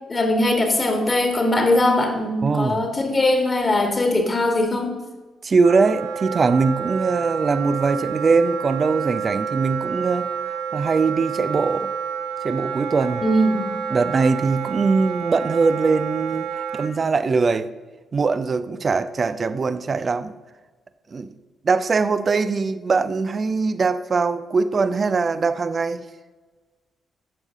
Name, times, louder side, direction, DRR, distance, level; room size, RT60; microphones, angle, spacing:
voice 1, 0.1-5.0 13.2-13.7, left 1 dB, 30° left, 1.8 m, -20 dB
voice 2, 2.4-2.8 5.4-10.3 10.7-11.9 12.4-13.2 13.9-17.7 18.1-20.3 21.1-21.3 21.6-26.0, right 4 dB, 40° right, 0.5 m, -21 dB
Wind instrument woodwind instrument, 5.6-16.9, right 7 dB, 75° right, 0.9 m, -29 dB
13.5 x 6.3 x 3.6 m
figure-of-eight pair, 40°, 0 cm